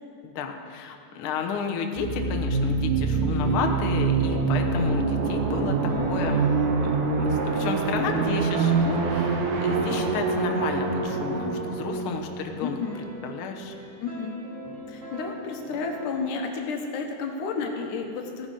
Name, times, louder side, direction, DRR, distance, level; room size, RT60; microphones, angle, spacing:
voice 1, 0.2-12.8 13.2-13.7, left 6 dB, 65° left, 4 dB, 1.4 m, -32 dB
sound 1, 2.0-13.5, right 4 dB, 85° right, 2.7 m, -25 dB
sound 2, 3.2-12.0 12.8-16.1, right 1 dB, 50° right, 3.2 m, -41 dB
voice 2, 12.6-13.0 14.0-14.4 14.9-18.5, left 4 dB, 80° left, 3 dB, 2.6 m, -31 dB
16.0 x 10.5 x 5.0 m, 2.5 s
omnidirectional pair, 3.6 m